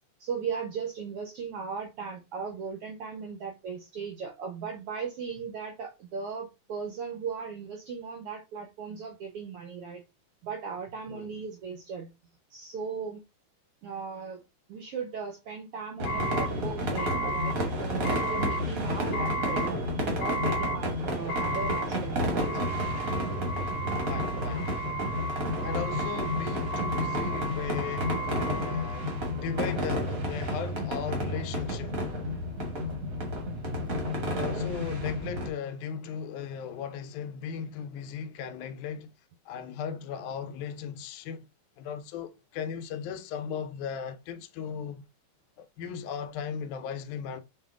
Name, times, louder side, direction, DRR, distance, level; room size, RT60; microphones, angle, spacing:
voice 1, 0.2-10.0 10.4-12.1 12.5-13.2 13.8-14.4 14.7-19.8 20.1-22.5 24.3-24.7, right 5 dB, 80° right, 1.3 m, -37 dB
sound 1, 16.0-29.6, right 2 dB, 60° left, 1.6 m, -35 dB
sound 2, 16.0-35.5, equal, 55° right, 0.9 m, -31 dB
voice 2, 24.1-24.8 25.6-28.2 28.4-32.0 34.3-39.1 39.5-41.5 41.8-45.0 45.6-47.4, left 7 dB, 85° left, 2.1 m, -37 dB
5.6 x 2.7 x 3.5 m
omnidirectional pair, 3.4 m